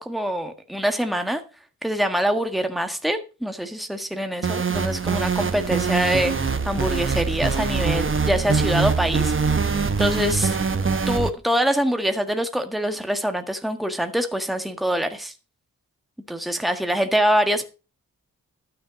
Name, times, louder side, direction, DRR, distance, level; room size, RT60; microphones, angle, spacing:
voice 1, 0.0-1.4 1.8-9.3 10.0-10.6 11.1-15.3 16.3-17.6, equal, ahead, 1.6 m, -24 dB
sound 1, 4.4-11.3, right 5 dB, 40° right, 1.2 m, -23 dB
12.0 x 6.8 x 5.2 m
cardioid pair, 85°, 33 cm